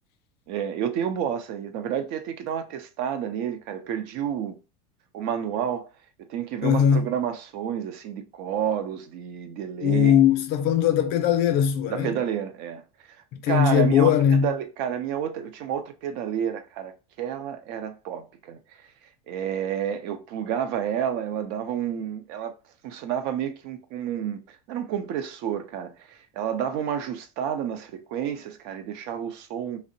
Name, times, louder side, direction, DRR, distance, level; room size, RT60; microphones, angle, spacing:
voice 1, 0.5-4.6 5.1-5.9 6.3-10.2 11.9-12.8 13.5-16.9 17.2-18.6 19.3-22.5 22.8-24.4 24.7-29.8, right 9 dB, 60° right, 0.5 m, -30 dB
voice 2, 6.6-7.1 9.8-12.2 13.3-14.5, left 8 dB, 55° left, 0.5 m, -20 dB
2.7 x 2.0 x 2.5 m
supercardioid pair, 110°, 19 cm